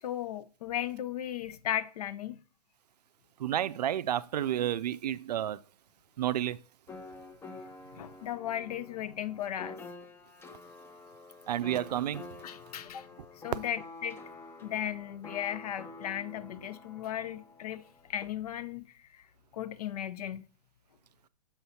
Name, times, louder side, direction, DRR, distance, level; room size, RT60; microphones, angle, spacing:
voice 1, 0.0-2.4 7.9-9.8 12.4-13.1 13.4-14.2 14.6-19.3 19.5-20.4, left 11 dB, 65° left, 0.6 m, -36 dB
voice 2, 3.4-5.6 6.2-6.6 11.5-12.3, right 11 dB, 75° right, 0.4 m, -30 dB
sound 1, 6.9-18.3, left 3 dB, 10° left, 0.6 m, -48 dB
7.1 x 2.7 x 5.7 m
hypercardioid pair, 125°, 21 cm